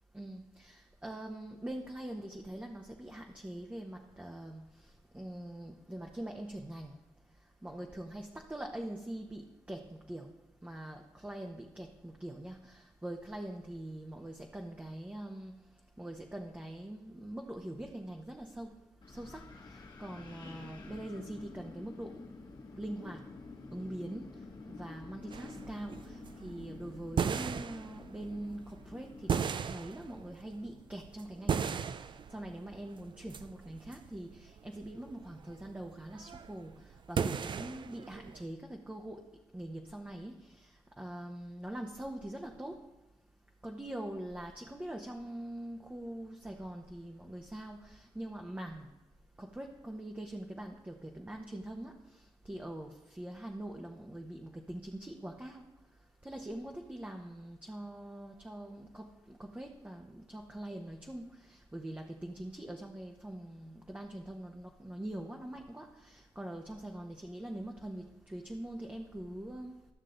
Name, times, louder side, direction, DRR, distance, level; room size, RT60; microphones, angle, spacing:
voice 1, 0.1-4.6 5.1-6.9 7.6-10.3 10.6-15.5 16.0-18.8 19.1-22.2 22.8-23.2 23.7-24.3 24.7-31.8 32.3-36.7 37.1-39.2 39.5-40.7 41.0-42.8 43.6-48.9 49.4-55.6 56.2-69.7, right 1 dB, 15° right, 1 dB, 0.9 m, -43 dB
Wind, 19.0-29.3, left 3 dB, 45° left, 1.5 m, -49 dB
sound 1, 25.3-38.4, right 7 dB, 55° right, 0.4 m, -38 dB
13.0 x 6.4 x 3.9 m, 1.0 s
cardioid pair, 65°, 10 cm